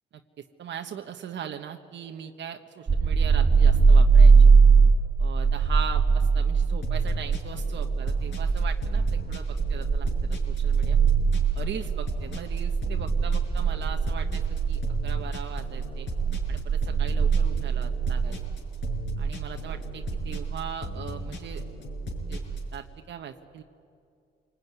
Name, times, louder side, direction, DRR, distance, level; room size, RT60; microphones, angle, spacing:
voice 1, 0.4-4.5 5.2-11.0 11.5-16.1 16.5-18.4 19.2-21.6 22.3-22.4 22.7-23.6, right 8 dB, 65° right, 4 dB, 1.2 m, -39 dB
sound 1, 2.9-22.8, right 5 dB, 35° right, 1.9 m, -22 dB
sound 2, 6.8-22.7, left 3 dB, 70° left, 5.5 m, -38 dB
27.0 x 19.5 x 9.5 m, 2.5 s
cardioid pair, 90°, 20 cm